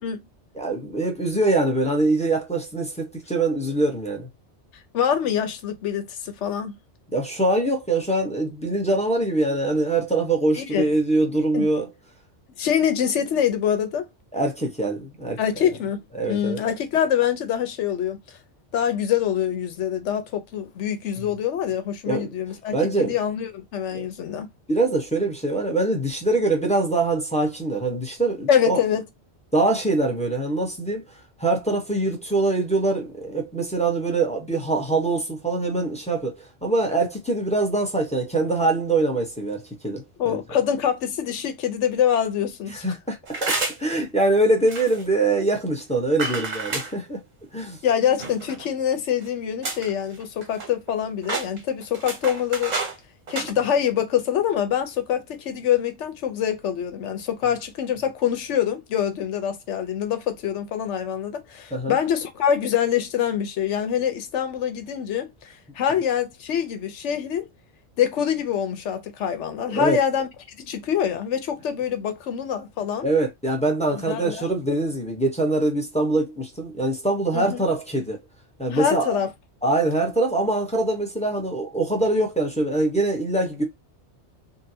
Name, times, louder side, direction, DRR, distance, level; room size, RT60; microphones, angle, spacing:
voice 1, 0.5-4.3 7.1-11.9 14.3-15.7 16.1-16.6 21.2-21.3 22.1-22.3 22.7-23.2 23.9-24.1 24.7-28.8 29.5-31.0 31.4-40.4 42.8-47.2 47.5-47.8 61.7-62.0 69.7-70.0 73.0-78.2 78.6-79.1 79.6-83.6, right 2 dB, 5° left, 0.7 m, -23 dB
voice 2, 4.9-6.8 10.6-10.8 11.5-11.7 12.6-14.1 15.4-16.0 16.3-18.2 18.7-24.5 28.5-29.0 40.2-42.9 47.8-52.8 53.3-67.5 68.0-70.3 70.7-73.1 73.9-74.5 77.3-77.7 78.7-79.3, left 9 dB, 80° left, 1.0 m, -25 dB
sound 1, 43.3-43.9 44.7-45.0 46.2-46.9 48.2-48.7 49.2-49.3 49.6-49.9 50.2-50.9 51.2-53.0 53.3-53.5, right 3 dB, 40° right, 0.8 m, -29 dB
3.8 x 2.2 x 2.7 m
omnidirectional pair, 1.2 m